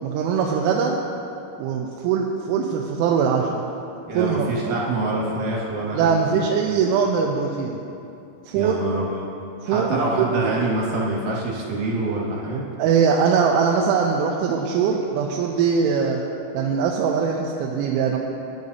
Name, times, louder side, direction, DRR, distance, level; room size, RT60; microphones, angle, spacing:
voice 1, 0.0-1.0 1.6-3.7 4.1-4.5 5.9-7.8 8.5-8.8 9.6-10.5 12.8-16.2 16.5-18.2, right 6 dB, 85° right, -1 dB, 3.1 m, -21 dB
voice 2, 4.1-6.4 8.5-9.2 9.7-12.6, right 2 dB, 60° right, -4 dB, 2.5 m, -25 dB
20.0 x 10.5 x 2.7 m, 2.8 s
omnidirectional pair, 5.6 m